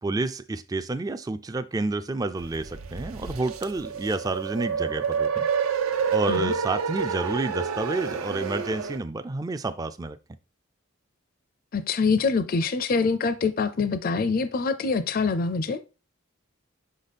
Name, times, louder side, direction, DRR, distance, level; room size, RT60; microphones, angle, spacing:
voice 1, 0.0-5.5 6.1-10.2, right 2 dB, 15° right, 0.3 m, -29 dB
sound 1, 2.4-9.0, right 6 dB, 90° right, 0.7 m, -29 dB
voice 2, 11.7-15.8, left 4 dB, 45° left, 0.5 m, -25 dB
5.7 x 5.2 x 4.1 m
head